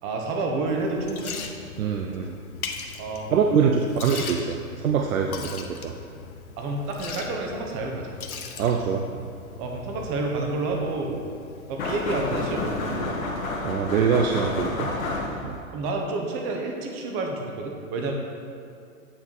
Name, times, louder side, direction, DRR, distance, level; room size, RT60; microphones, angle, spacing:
voice 1, 0.0-1.3 3.0-3.4 3.6-3.7 6.6-8.1 9.6-11.2 11.7-13.1 14.5-14.7 15.7-18.1, right 3 dB, 30° right, 1 dB, 0.9 m, -29 dB
Liquid, 0.7-13.0, left 5 dB, 90° left, 0.7 m, -40 dB
voice 2, 1.8-2.3 3.3-6.0 8.6-9.3 13.6-14.9 15.4-15.6, right 6 dB, 80° right, 3 dB, 0.6 m, -24 dB
sound 1, 11.8-15.7, left 2 dB, 70° left, 1.3 m, -30 dB
8.5 x 3.5 x 4.6 m, 2.4 s
hypercardioid pair, 125°, 42 cm